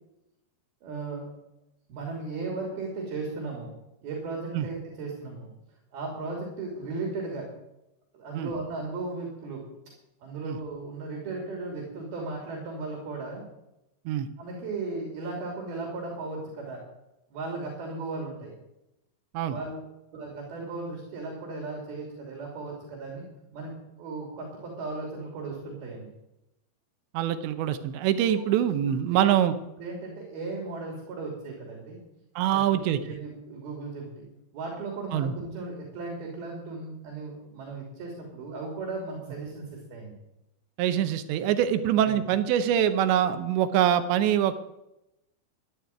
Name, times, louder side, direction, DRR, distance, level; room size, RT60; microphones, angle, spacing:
voice 1, 0.8-1.3 1.9-3.7 4.0-5.5 5.9-7.5 8.1-9.6 10.2-13.4 14.4-16.8 17.3-18.5 19.5-19.9 20.1-23.3 23.5-26.1 28.2-28.5 28.9-29.3 29.8-32.0 32.5-34.3 34.5-40.1 42.0-42.2, right 3 dB, 60° right, 0 dB, 4.7 m, -36 dB
voice 2, 27.1-29.5 32.4-33.0 35.1-35.3 40.8-44.5, right 10 dB, 80° right, 10 dB, 3.2 m, -24 dB
13.0 x 11.5 x 9.4 m, 0.91 s
omnidirectional pair, 5.2 m